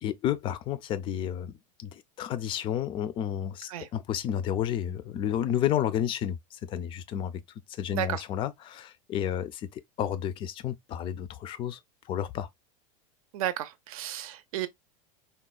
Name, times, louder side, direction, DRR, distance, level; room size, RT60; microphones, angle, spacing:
voice 1, 0.0-7.4 7.7-11.8 12.1-12.5, left 10 dB, 30° left, 0.3 m, -31 dB
voice 2, 7.9-8.2 13.3-14.7, right 12 dB, 80° right, 0.6 m, -33 dB
3.9 x 2.1 x 2.2 m
supercardioid pair, 145°, 18 cm